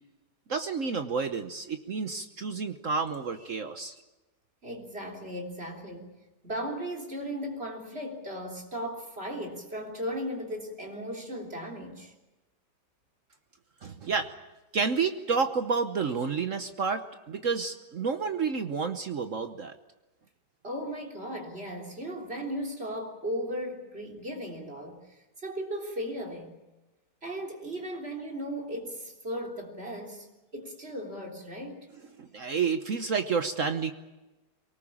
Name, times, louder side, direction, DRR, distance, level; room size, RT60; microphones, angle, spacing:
voice 1, 0.5-3.9 13.8-14.3 14.7-19.7 32.2-33.9, right 5 dB, 55° right, 8 dB, 1.2 m, -30 dB
voice 2, 4.6-6.1 6.4-12.1 20.6-26.6 27.2-30.3 30.5-31.8, equal, 35° right, 1 dB, 3.8 m, -36 dB
23.5 x 19.0 x 8.7 m, 1.1 s
omnidirectional pair, 1.9 m